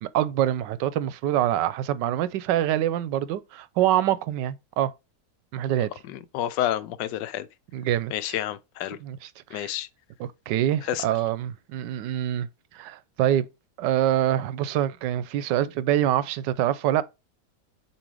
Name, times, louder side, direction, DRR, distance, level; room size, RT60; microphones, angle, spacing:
voice 1, 0.0-4.9 5.5-5.9 7.7-8.4 9.0-9.8 10.2-12.5 12.7-13.5 13.8-17.0, right 12 dB, 90° right, 1.2 m, -25 dB
voice 2, 6.1-7.5 8.1-9.0 9.5-9.9 10.9-11.0, left 12 dB, 90° left, 1.3 m, -29 dB
7.0 x 3.0 x 4.7 m
omnidirectional pair, 1.9 m